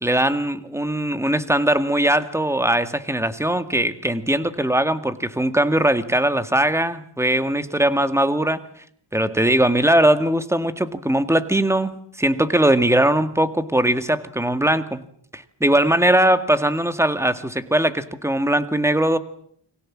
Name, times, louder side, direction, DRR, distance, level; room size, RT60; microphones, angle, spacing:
voice 1, 0.0-8.6 9.1-15.0 15.3-19.2, right 1 dB, 5° right, 11 dB, 1.9 m, -20 dB
29.5 x 24.5 x 7.4 m, 0.65 s
wide cardioid pair, 115°, 45 cm